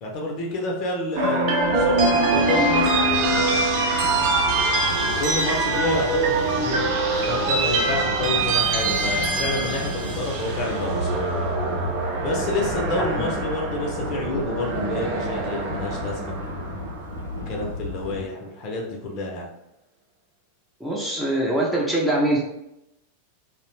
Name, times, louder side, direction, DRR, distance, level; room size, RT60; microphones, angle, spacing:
voice 1, 0.0-1.5 1.7-3.0 5.0-6.9 7.3-11.2 12.2-16.4 17.5-19.5, left 2 dB, 40° left, 0 dB, 0.6 m, -29 dB
sound 1, 1.2-17.4, right 2 dB, 45° right, 0.5 m, -24 dB
sound 2, 1.6-18.2, left 2 dB, 85° left, 0.5 m, -34 dB
voice 2, 20.8-22.4, right 1 dB, ahead, -4 dB, 0.5 m, -23 dB
2.5 x 2.0 x 3.0 m, 0.84 s
figure-of-eight pair, 90°, 0 cm